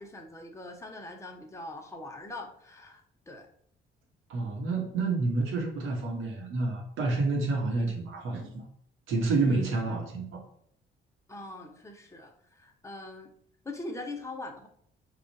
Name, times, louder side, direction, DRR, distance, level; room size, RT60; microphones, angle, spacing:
voice 1, 0.0-3.5 7.8-8.1 9.4-9.7 11.3-13.3 13.6-14.7, left 2 dB, 15° left, 2 dB, 0.9 m, -42 dB
voice 2, 4.3-8.6 9.1-10.4, right 3 dB, 85° right, 1 dB, 1.2 m, -29 dB
4.9 x 2.4 x 4.0 m, 0.64 s
cardioid pair, 90°, 20 cm